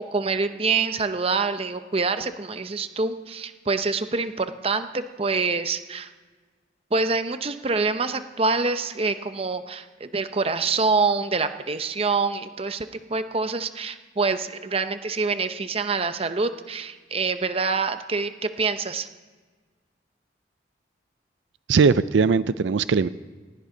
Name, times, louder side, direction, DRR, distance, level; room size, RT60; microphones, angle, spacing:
voice 1, 0.0-6.1 6.9-19.1, right 4 dB, 30° right, 10 dB, 0.7 m, -26 dB
voice 2, 21.7-23.1, right 5 dB, 85° right, 16 dB, 0.4 m, -19 dB
19.0 x 16.5 x 3.9 m, 1.4 s
head